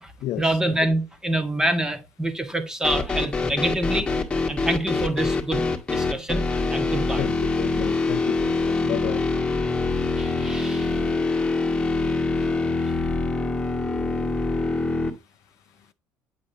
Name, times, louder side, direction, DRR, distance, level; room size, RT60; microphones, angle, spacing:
voice 1, 0.4-4.1 4.5-6.4 6.7-7.3 10.2-11.0, right 1 dB, 10° right, 1.7 m, -26 dB
sound 1, 2.8-15.1, left 3 dB, 15° left, 1.8 m, -24 dB
voice 2, 7.2-9.2, left 14 dB, 70° left, 0.5 m, -31 dB
8.3 x 6.9 x 2.9 m
supercardioid pair, 95°, 6 cm